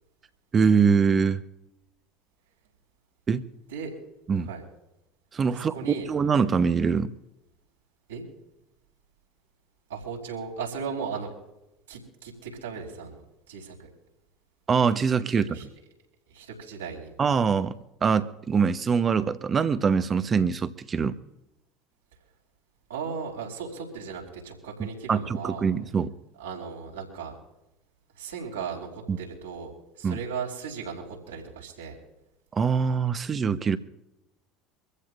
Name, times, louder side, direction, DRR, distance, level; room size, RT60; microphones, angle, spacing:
voice 1, 0.5-1.4 3.3-3.4 4.3-4.5 5.3-5.7 6.1-7.1 14.7-15.5 17.2-21.2 25.1-26.1 29.1-29.2 30.0-30.2 32.5-33.8, right 6 dB, 30° right, 12 dB, 1.0 m, -23 dB
voice 2, 5.5-6.1 8.1-8.2 9.9-11.3 11.9-13.2 13.5-13.9 15.5-15.7 16.3-17.1 22.9-25.7 26.4-27.4 28.1-32.0, right 6 dB, 75° right, -1 dB, 4.4 m, -36 dB
25.0 x 15.0 x 2.6 m, 0.90 s
figure-of-eight pair, 70°, 0 cm